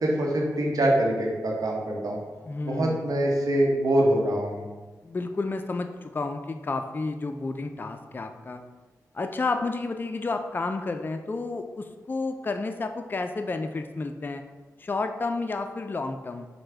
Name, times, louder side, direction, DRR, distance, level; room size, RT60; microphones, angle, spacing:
voice 1, 0.0-2.2 2.6-4.7, right 1 dB, 65° right, -1 dB, 0.8 m, -24 dB
voice 2, 2.4-3.0 5.0-8.6 9.1-14.4 14.8-16.5, left 3 dB, 30° left, 6 dB, 0.3 m, -31 dB
4.9 x 2.1 x 3.3 m, 1.3 s
cardioid pair, 45°, 7 cm